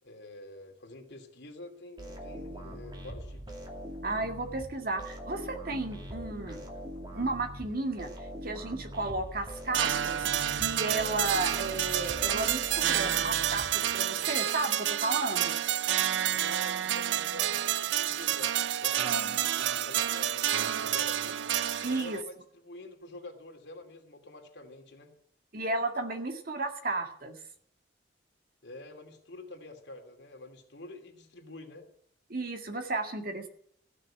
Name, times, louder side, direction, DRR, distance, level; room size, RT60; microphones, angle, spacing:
voice 1, 0.0-3.6 16.3-21.4 21.8-25.1 28.6-31.9, left 2 dB, 70° left, 2 dB, 2.7 m, -47 dB
sound 1, 2.0-14.2, equal, 25° right, 2.5 m, -43 dB
voice 2, 4.0-6.6 7.1-8.1 8.4-15.6 19.0-19.3 21.8-22.2 25.5-27.4 32.3-33.5, right 2 dB, 55° right, 6 dB, 1.9 m, -33 dB
sound 2, 9.7-22.2, right 11 dB, 75° right, 0.5 m, -29 dB
15.0 x 6.7 x 8.7 m, 0.65 s
head